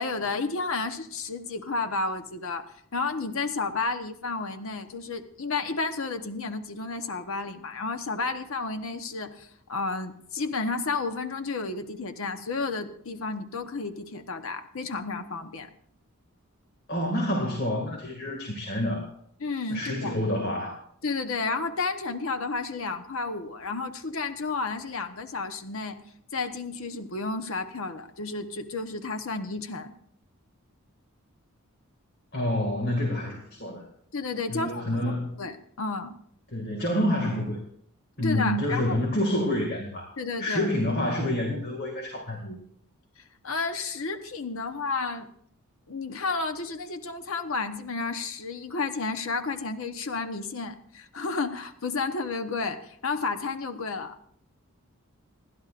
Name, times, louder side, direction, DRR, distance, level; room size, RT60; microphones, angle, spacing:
voice 1, 0.0-15.7 18.2-18.3 19.4-20.2 21.0-26.0 26.3-29.9 34.1-36.1 38.2-39.0 40.2-40.7 43.4-45.3 45.9-54.1, left 3 dB, 65° left, 8 dB, 1.0 m, -32 dB
voice 2, 16.9-19.1 19.7-20.8 32.3-33.8 34.5-35.4 36.5-37.6 38.2-40.1 40.4-42.6, left 1 dB, 45° left, 1 dB, 2.2 m, -28 dB
27.5 x 11.5 x 2.5 m, 0.65 s
head